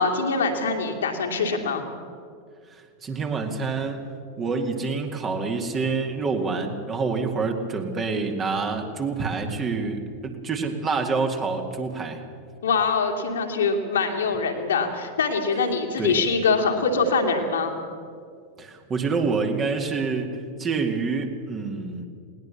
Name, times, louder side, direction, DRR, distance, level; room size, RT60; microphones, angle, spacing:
voice 1, 0.0-1.8 12.6-17.8, left 4 dB, 65° left, 3 dB, 2.6 m, -23 dB
voice 2, 2.7-4.1 4.4-12.2 16.0-16.2 18.6-20.3 20.6-22.0, right 4 dB, 25° right, 4 dB, 2.4 m, -27 dB
20.0 x 19.0 x 7.1 m, 2.3 s
figure-of-eight pair, 90°, 0 cm